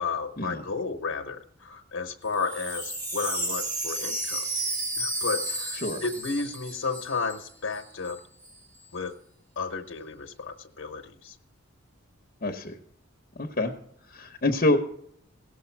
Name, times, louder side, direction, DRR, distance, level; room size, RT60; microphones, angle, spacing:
voice 1, 0.0-4.5 5.0-8.2 8.9-9.1 9.6-11.4, left 4 dB, 85° left, 4 dB, 0.9 m, -32 dB
Wind chime, 2.3-7.5 7.7-7.8 8.0-8.5, right 1 dB, 40° right, 2.7 m, -32 dB
voice 2, 12.4-12.8 13.4-13.7 14.1-14.8, left 2 dB, 40° left, 4 dB, 0.9 m, -26 dB
17.5 x 6.6 x 4.5 m, 0.69 s
head